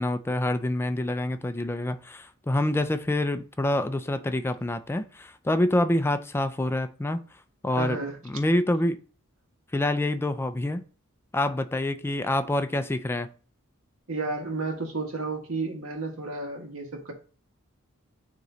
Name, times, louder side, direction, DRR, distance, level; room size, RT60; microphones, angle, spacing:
voice 1, 0.0-7.2 7.6-8.0 8.2-9.0 9.7-10.8 11.3-13.3, left 1 dB, 10° left, 0.3 m, -26 dB
voice 2, 7.7-8.2 14.1-17.1, right 3 dB, 85° right, 1.6 m, -32 dB
9.4 x 3.1 x 3.9 m
head